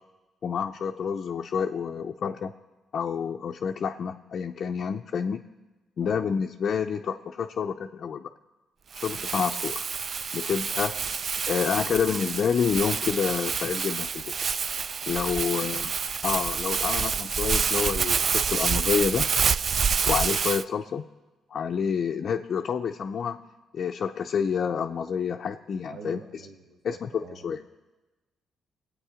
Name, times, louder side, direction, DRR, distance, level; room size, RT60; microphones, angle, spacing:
voice 1, 0.4-2.5 2.9-5.4 6.0-8.3 8.9-9.8 10.3-10.9 11.5-14.3 15.1-15.9 16.2-19.2 20.1-21.1 21.5-23.4 23.7-26.2 26.8-27.8, left 7 dB, 55° left, 3 dB, 0.5 m, -28 dB
Crumpling crinkling, 8.9-20.6, right 6 dB, 45° right, 0.3 m, -28 dB
voice 2, 15.4-15.8 25.5-25.6 25.9-27.5, right 5 dB, 75° right, 4 dB, 1.4 m, -46 dB
21.0 x 8.3 x 5.0 m, 1.2 s
cardioid pair, 90°, 0 cm